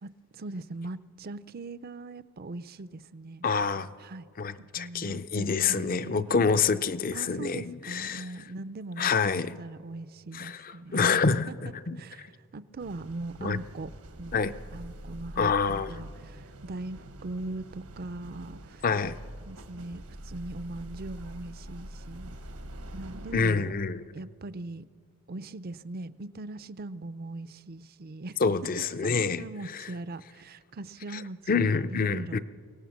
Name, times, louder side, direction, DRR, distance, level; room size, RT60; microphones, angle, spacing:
voice 1, 0.0-3.4 4.0-4.2 4.6-6.6 7.1-11.0 11.5-11.6 12.0-13.9 14.2-14.4 14.7-15.5 15.9-18.8 19.5-22.4 22.9-23.7 24.1-24.9 25.3-28.4 28.8-32.4, right 2 dB, 45° right, 16 dB, 0.5 m, -40 dB
voice 2, 3.4-3.9 4.4-8.3 9.0-9.6 10.3-12.3 13.4-13.6 14.3-14.5 15.4-15.9 18.8-19.2 23.3-24.0 28.4-29.4 29.7-29.9 31.1-31.2 31.5-32.4, left 5 dB, 40° left, 13 dB, 0.5 m, -27 dB
sound 1, 12.8-23.5, right 1 dB, 80° right, 1.4 m, -45 dB
24.0 x 17.5 x 7.2 m, 2.1 s
head